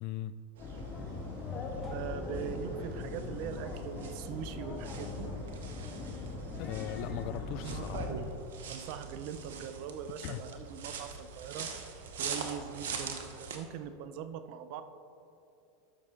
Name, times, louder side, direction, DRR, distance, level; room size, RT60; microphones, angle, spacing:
voice 1, 0.0-0.3 6.6-8.1 10.2-10.4, left 12 dB, 55° left, 15 dB, 0.3 m, -38 dB
sound 1, 0.6-8.1, left 3 dB, 35° left, 1.5 m, -40 dB
sound 2, 0.6-13.6, right 5 dB, 75° right, 0.9 m, -43 dB
voice 2, 1.7-5.3 8.7-11.7 12.1-14.8, right 8 dB, 60° right, 11 dB, 0.6 m, -42 dB
12.5 x 6.2 x 3.7 m, 2.7 s
hypercardioid pair, 90°, 0 cm